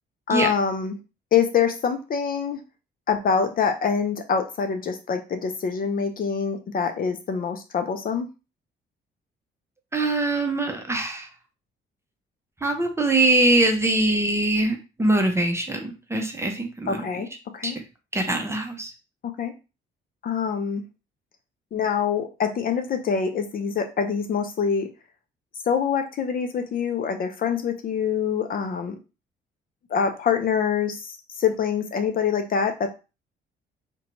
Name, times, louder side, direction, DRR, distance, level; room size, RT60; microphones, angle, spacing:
voice 1, 0.3-1.0 1.3-2.6 3.1-8.3 16.9-17.3 17.5-17.8 19.2-19.5 20.2-20.8 21.7-24.9 25.7-29.0 29.9-32.9, left 6 dB, 45° left, 6 dB, 0.5 m, -25 dB
voice 2, 9.9-11.3 12.6-17.1 17.6-17.7 18.1-18.9, right 2 dB, 15° right, 4 dB, 0.6 m, -23 dB
2.6 x 2.2 x 2.9 m, 0.30 s
cardioid pair, 90°, 20 cm